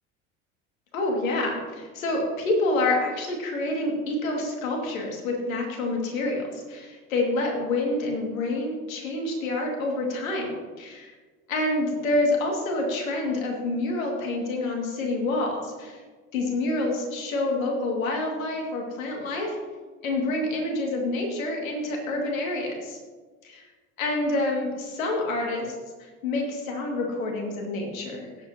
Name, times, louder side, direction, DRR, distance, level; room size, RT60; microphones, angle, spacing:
voice 1, 0.9-11.1 11.5-16.0 16.3-19.6 20.0-23.0 23.4-23.6 24.0-25.7 26.0-28.3, left 2 dB, 85° left, 0 dB, 2.3 m, -27 dB
18.0 x 8.2 x 2.9 m, 1.4 s
hypercardioid pair, 70°, 40 cm